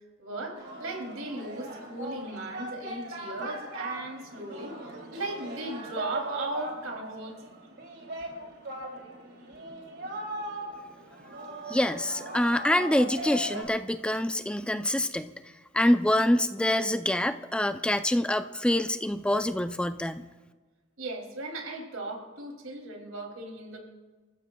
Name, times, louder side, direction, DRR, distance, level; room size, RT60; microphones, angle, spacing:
voice 1, 0.2-4.7 5.1-7.5 21.0-23.8, right 2 dB, 90° right, 2 dB, 2.8 m, -37 dB
Singing, 0.5-13.6, right 1 dB, 55° right, 2.8 m, -39 dB
voice 2, 11.7-15.3 15.7-20.2, left 1 dB, 5° left, 9 dB, 0.4 m, -26 dB
29.0 x 14.5 x 2.3 m, 1.3 s
head